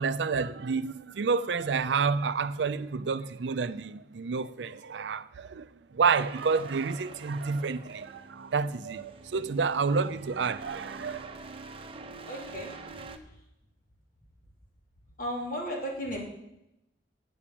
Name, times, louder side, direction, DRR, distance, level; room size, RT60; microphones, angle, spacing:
voice 1, 0.0-11.4, right 5 dB, 75° right, 0.5 m, -29 dB
sound 1, 6.2-13.2, right 3 dB, 30° right, 0.8 m, -46 dB
voice 2, 12.3-12.7 15.2-16.2, equal, 50° left, 2.9 m, -34 dB
8.5 x 7.9 x 7.2 m
head